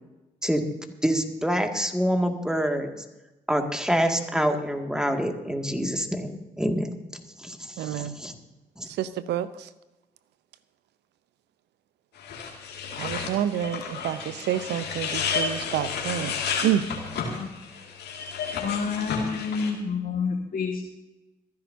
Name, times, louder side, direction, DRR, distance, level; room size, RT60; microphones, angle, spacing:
voice 1, 0.4-0.7 1.0-2.9 3.5-8.3 8.8-8.9, equal, 5° right, 4 dB, 2.2 m, -26 dB
voice 2, 7.8-8.1 9.0-9.7 13.0-16.3 16.6-16.9, right 11 dB, 70° right, 15 dB, 0.8 m, -28 dB
sound 1, 12.2-19.7, left 6 dB, 65° left, 2.3 m, -32 dB
voice 3, 18.6-20.9, left 5 dB, 50° left, 1 dB, 1.7 m, -29 dB
26.0 x 10.5 x 2.8 m, 1.0 s
hypercardioid pair, 40°, 18 cm